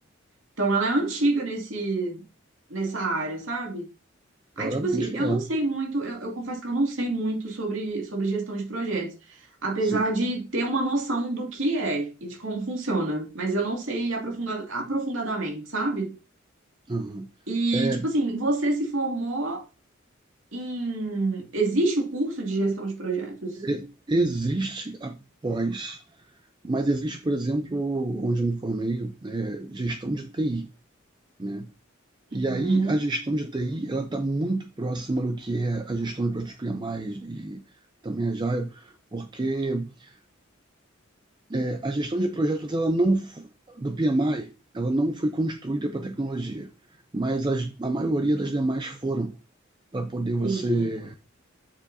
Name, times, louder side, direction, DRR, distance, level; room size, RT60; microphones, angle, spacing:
voice 1, 0.6-2.2 2.7-3.9 4.6-16.1 17.5-19.6 20.5-23.6 32.3-33.0 50.4-50.9, right 2 dB, 80° right, 2.4 m, -27 dB
voice 2, 4.6-5.4 9.8-10.0 16.9-17.3 17.7-18.1 23.6-26.0 26.6-30.7 31.4-31.7 32.3-37.6 38.0-40.1 41.5-46.7 47.1-49.3 49.9-51.2, right 2 dB, 25° right, 0.5 m, -27 dB
7.2 x 6.8 x 2.7 m
head